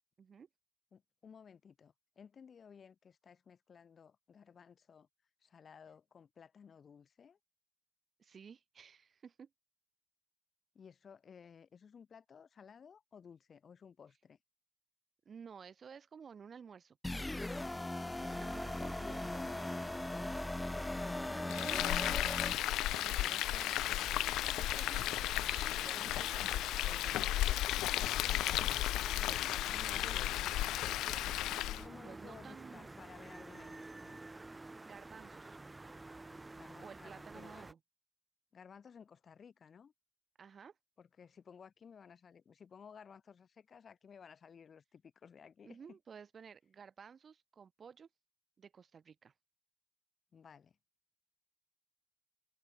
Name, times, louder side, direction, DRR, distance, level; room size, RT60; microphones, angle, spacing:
voice 1, 0.2-0.5 8.2-9.5 15.3-17.0 18.1-19.5 21.0-22.3 22.9-27.7 28.0-31.3 32.0-32.9 34.5-35.6 36.8-37.8 40.4-40.8 45.6-48.1 48.6-49.3, right 6 dB, 45° right, 4.0 m, -54 dB
voice 2, 0.9-5.1 5.4-7.4 10.7-14.4 18.6-20.3 20.7-22.0 28.9-29.1 31.8-34.2 36.6-37.6 38.5-39.9 41.0-46.0 50.3-50.7, left 6 dB, 50° left, 2.5 m, -57 dB
sound 1, 17.0-22.5, left 2 dB, 15° left, 0.8 m, -39 dB
sound 2, 18.3-37.7, right 2 dB, 20° right, 1.3 m, -50 dB
Frying (food), 21.5-31.9, left 15 dB, 90° left, 0.5 m, -34 dB
open air
cardioid pair, 90°, 0 cm